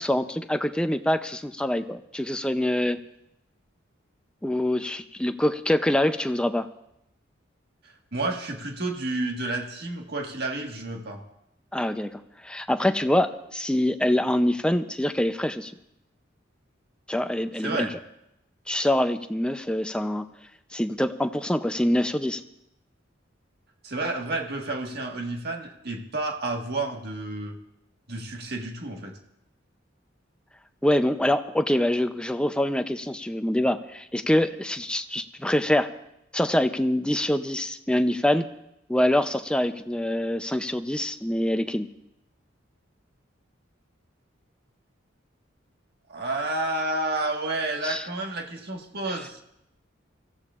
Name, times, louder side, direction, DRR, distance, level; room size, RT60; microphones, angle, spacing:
voice 1, 0.0-3.0 4.4-6.7 11.7-15.7 17.1-17.9 18.7-20.3 20.7-22.4 30.8-35.9 36.3-38.5 38.9-41.9 47.8-48.0, left 1 dB, 5° left, 8 dB, 0.5 m, -25 dB
voice 2, 8.1-11.2 17.6-17.9 23.8-27.6 28.1-29.2 46.1-49.4, right 2 dB, 55° right, 1 dB, 1.7 m, -30 dB
26.0 x 15.0 x 2.5 m, 0.82 s
head